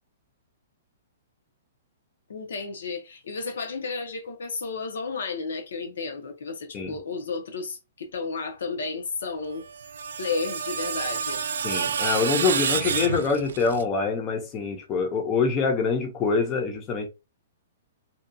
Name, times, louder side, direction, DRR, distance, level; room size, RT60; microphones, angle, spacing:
voice 1, 2.3-9.6 10.2-11.4, left 4 dB, 85° left, 0.6 m, -32 dB
Screech, 9.5-13.8, right 7 dB, 75° right, 0.4 m, -29 dB
voice 2, 11.6-17.1, left 4 dB, 15° left, 0.5 m, -25 dB
2.6 x 2.2 x 2.5 m
hypercardioid pair, 175°, 0 cm